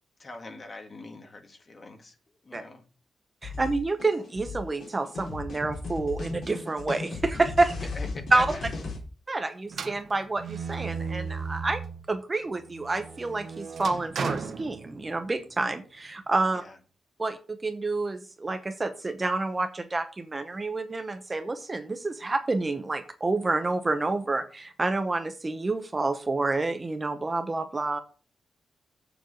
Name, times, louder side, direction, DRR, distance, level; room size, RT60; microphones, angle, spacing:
voice 1, 0.2-2.2 2.4-2.9 7.8-8.4 16.5-16.8, left 2 dB, 30° left, 5 dB, 1.7 m, -42 dB
sound 1, 3.4-9.0, left 3 dB, 55° left, 4.3 m, -36 dB
voice 2, 3.4-7.7 8.3-8.6 9.3-11.8 12.1-16.6 17.2-28.0, right 3 dB, 20° right, 8 dB, 0.8 m, -28 dB
sound 2, 9.7-12.1 12.6-15.4, right 5 dB, 60° right, 0.9 m, -36 dB
7.5 x 7.0 x 6.3 m, 0.37 s
wide cardioid pair, 165°, 0 cm